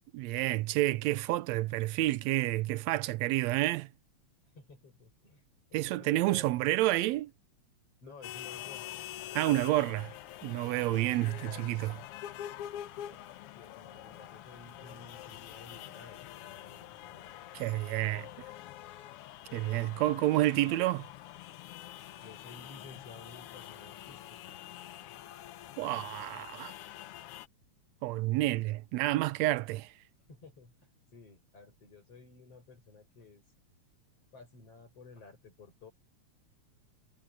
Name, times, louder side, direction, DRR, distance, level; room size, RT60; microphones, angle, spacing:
voice 1, 0.1-3.9 5.7-7.3 9.4-10.1 10.4-12.0 17.5-18.3 19.5-21.1 25.8-26.8 28.0-29.9, right 17 dB, 75° right, 1.8 m, -29 dB
voice 2, 4.5-5.4 5.7-6.6 8.0-9.0 9.3-10.1 10.9-11.2 13.5-17.3 22.2-24.6 30.3-30.7 31.1-33.4 34.3-35.9, left 4 dB, 50° left, 7.8 m, -53 dB
sound 1, 8.2-27.5, left 12 dB, 75° left, 1.4 m, -46 dB
omnidirectional pair, 3.4 m